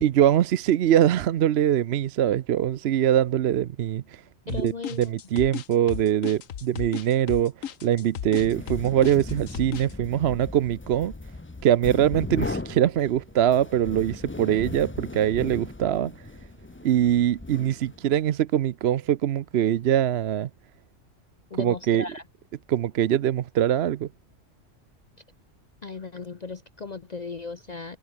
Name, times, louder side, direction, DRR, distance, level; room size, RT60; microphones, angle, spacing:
voice 1, 0.0-4.2 4.5-4.7 5.0-7.5 7.8-11.1 11.6-16.1 16.8-20.5 21.6-22.1 22.7-24.1, right 11 dB, 60° right, 0.8 m, -23 dB
sound 1, 4.5-9.9, left 9 dB, 90° left, 1.3 m, -34 dB
voice 2, 4.5-5.0 21.5-22.2 25.8-28.0, left 4 dB, 40° left, 0.8 m, -36 dB
sound 2, 8.2-18.2, left 2 dB, 20° left, 0.3 m, -37 dB
omnidirectional pair, 1.3 m